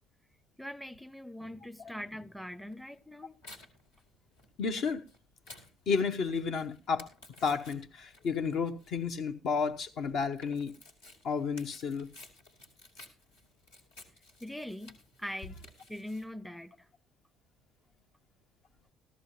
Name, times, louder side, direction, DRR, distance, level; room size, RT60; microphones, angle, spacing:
voice 1, 0.6-3.4 14.4-15.6 15.9-16.7, left 1 dB, ahead, 0.6 m, -42 dB
Tearing, 2.7-16.2, left 2 dB, 80° left, 2.0 m, -56 dB
voice 2, 4.6-5.0 5.9-7.1 7.4-10.8 11.2-12.1, left 5 dB, 55° left, 0.9 m, -31 dB
14.5 x 13.5 x 2.7 m
figure-of-eight pair, 50°, 0 cm